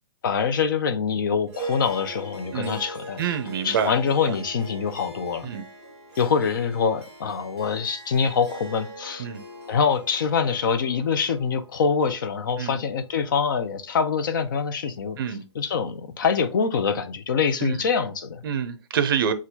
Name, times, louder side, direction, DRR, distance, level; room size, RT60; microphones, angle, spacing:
voice 1, 0.2-3.2 3.6-5.5 6.2-9.3 9.7-18.4, left 6 dB, 45° left, 0.5 m, -25 dB
Harp, 1.5-14.0, right 1 dB, 10° right, 1.5 m, -41 dB
voice 2, 3.2-3.9 5.4-5.6 9.2-9.4 12.6-12.8 15.2-15.4 17.6-17.8 18.4-19.3, right 8 dB, 50° right, 0.6 m, -26 dB
6.1 x 2.4 x 2.7 m
hypercardioid pair, 175°, 15 cm